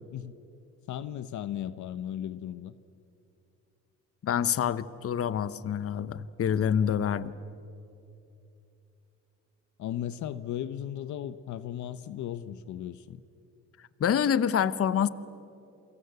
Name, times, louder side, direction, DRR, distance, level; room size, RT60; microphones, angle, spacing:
voice 1, 0.9-2.7 9.8-13.2, left 11 dB, 75° left, 14 dB, 0.9 m, -36 dB
voice 2, 4.2-7.3 14.0-15.1, left 8 dB, 50° left, 16 dB, 1.0 m, -27 dB
28.0 x 24.5 x 8.1 m, 2.7 s
cardioid pair, 90°, 30 cm